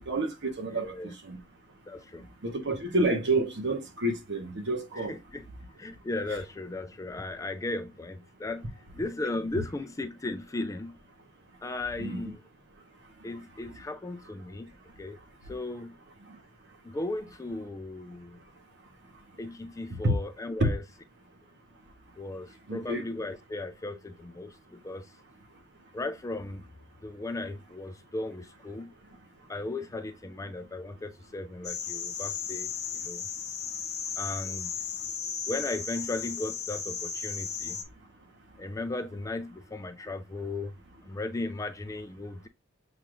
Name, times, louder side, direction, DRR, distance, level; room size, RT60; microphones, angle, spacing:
voice 1, 0.0-0.9 1.2-1.4 2.4-5.1 12.0-12.3 20.0-20.1 20.6-20.7 22.7-23.0, right 2 dB, 60° right, 1.1 m, -28 dB
voice 2, 0.7-1.1 1.9-2.3 5.0-5.4 5.8-11.0 11.6-12.4 13.2-14.7 15.0-15.2 15.5-15.9 16.8-18.4 19.4-20.8 22.2-25.1 25.9-26.7 27.0-28.9 29.5-33.2 34.2-34.7 35.5-37.8 38.6-40.7 41.1-42.5, left 2 dB, 15° left, 0.3 m, -36 dB
sound 1, 31.6-37.8, left 6 dB, 35° left, 0.9 m, -35 dB
6.8 x 2.4 x 3.0 m
head